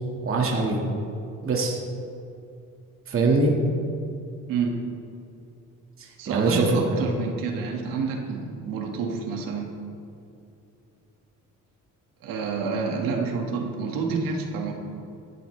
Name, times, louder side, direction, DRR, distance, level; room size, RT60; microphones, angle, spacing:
voice 1, 0.2-0.9 1.4-1.8 3.1-3.5 6.0-7.0, right 3 dB, 40° right, -1 dB, 2.1 m, -23 dB
voice 2, 6.2-9.7 12.2-14.7, right 5 dB, 90° right, 1 dB, 2.0 m, -28 dB
18.0 x 12.0 x 3.4 m, 2.6 s
cardioid pair, 115°, 33 cm